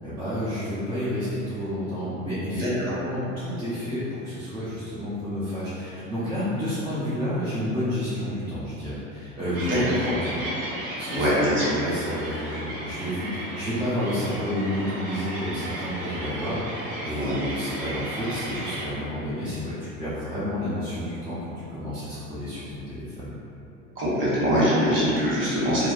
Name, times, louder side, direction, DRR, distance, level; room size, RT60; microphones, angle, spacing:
voice 1, 0.0-2.7 3.0-23.3, equal, 15° right, -13 dB, 0.6 m, -30 dB
voice 2, 2.5-2.9 9.7-9.8 11.1-11.7 17.2-17.4 24.0-25.9, equal, 30° right, -9 dB, 1.2 m, -23 dB
sound 1, 9.5-18.9, right 1 dB, 45° right, 0.9 m, -34 dB
3.2 x 2.2 x 2.4 m, 2.9 s
hypercardioid pair, 90°, 40 cm